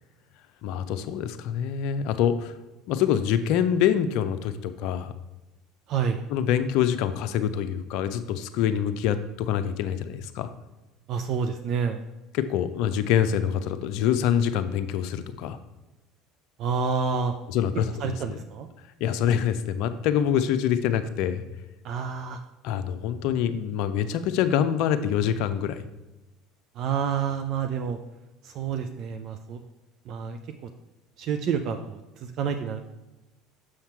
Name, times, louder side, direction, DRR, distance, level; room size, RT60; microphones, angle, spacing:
voice 1, 0.6-2.5 2.9-5.1 6.3-10.5 12.3-15.6 17.5-18.4 19.0-21.5 22.6-25.8, left 9 dB, 65° left, 9 dB, 0.5 m, -25 dB
voice 2, 5.9-6.2 11.1-12.0 16.6-17.3 18.0-18.7 21.8-22.4 26.8-28.0 28.4-29.6 30.1-30.4 31.2-32.0 32.4-32.9, right 6 dB, 55° right, 7 dB, 0.5 m, -28 dB
6.4 x 5.8 x 4.5 m, 1.0 s
hypercardioid pair, 80°, 0 cm